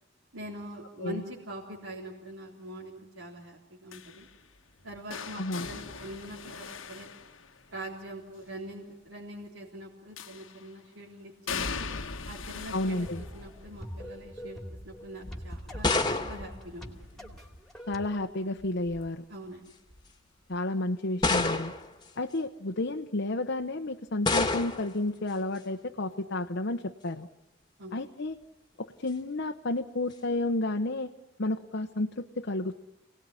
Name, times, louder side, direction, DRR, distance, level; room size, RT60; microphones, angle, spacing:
voice 1, 0.3-4.3 4.8-7.1 7.7-11.7 12.2-17.4 19.3-19.7 27.8-28.0, right 1 dB, 80° right, -3 dB, 3.7 m, -43 dB
sound 1, 3.9-8.0 10.2-10.8 11.5-17.3 17.6-18.0 19.3-19.4, left 5 dB, 75° left, 1.4 m, -41 dB
voice 2, 5.4-5.7 12.7-13.2 17.9-19.2 20.5-21.7 22.2-27.3 27.9-28.3 28.8-31.1 31.4-32.8, left 2 dB, 60° left, 4 dB, 1.0 m, -31 dB
sound 2, 12.9-18.1, equal, ahead, 2.6 m, -45 dB
sound 3, 15.2-17.6 18.6-19.1 19.9-20.0 21.2-22.0 24.2-25.0, left 3 dB, 20° left, 1.8 m, -29 dB
28.0 x 19.0 x 9.8 m, 0.91 s
head